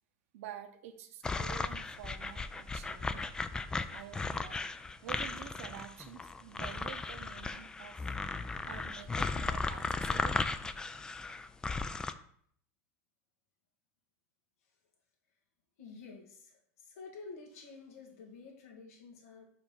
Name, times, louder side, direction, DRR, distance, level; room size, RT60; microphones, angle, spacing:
voice 1, 0.3-3.3 3.9-4.6 5.0-8.1 8.7-10.4, right 10 dB, 80° right, 7 dB, 1.0 m, -48 dB
sound 1, 1.2-12.1, left 3 dB, 10° left, 0.3 m, -36 dB
voice 2, 15.8-19.5, left 4 dB, 90° left, 0 dB, 2.1 m, -50 dB
5.2 x 5.0 x 5.2 m, 0.63 s
supercardioid pair, 145°, 8 cm